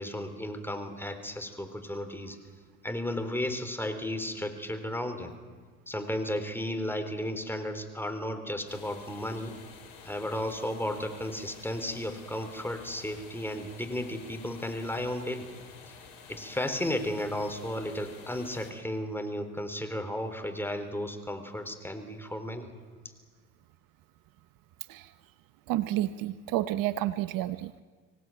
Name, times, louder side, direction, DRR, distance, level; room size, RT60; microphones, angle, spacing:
voice 1, 0.0-2.4 2.8-5.3 5.9-9.6 10.0-15.5 16.3-22.7, left 1 dB, 5° left, 7 dB, 3.9 m, -34 dB
sound 1, 8.7-18.7, left 5 dB, 80° left, 5.3 m, -50 dB
voice 2, 25.7-27.8, right 14 dB, 65° right, 13 dB, 1.0 m, -30 dB
25.0 x 17.5 x 9.2 m, 1.5 s
hypercardioid pair, 70°, 37 cm